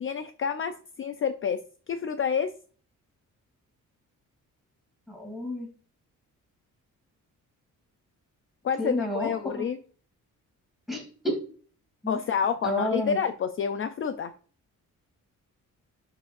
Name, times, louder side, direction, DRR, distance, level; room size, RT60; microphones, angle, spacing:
voice 1, 0.0-1.6 1.9-2.5 8.6-9.8 12.1-14.3, left 7 dB, 40° left, 9 dB, 0.5 m, -28 dB
voice 2, 5.1-5.7 8.8-9.7 10.9-11.3 12.0-12.2 12.6-13.2, left 1 dB, ahead, -1 dB, 2.8 m, -30 dB
11.0 x 4.9 x 2.5 m, 0.42 s
wide cardioid pair, 170°, 32 cm